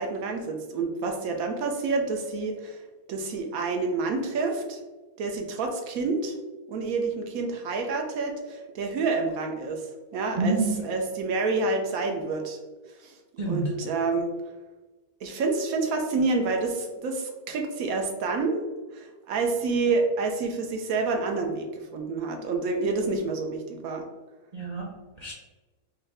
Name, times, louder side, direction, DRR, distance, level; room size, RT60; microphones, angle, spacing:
voice 1, 0.0-4.8 5.2-6.4 6.7-12.6 12.9-13.2 13.4-14.3 15.2-18.7 18.9-24.0, right 3 dB, 80° right, 3 dB, 1.0 m, -28 dB
voice 2, 10.3-10.8 13.4-13.8 24.5-25.3, right 3 dB, 60° right, -3 dB, 0.4 m, -28 dB
4.0 x 2.6 x 3.2 m, 1.2 s
omnidirectional pair, 1.5 m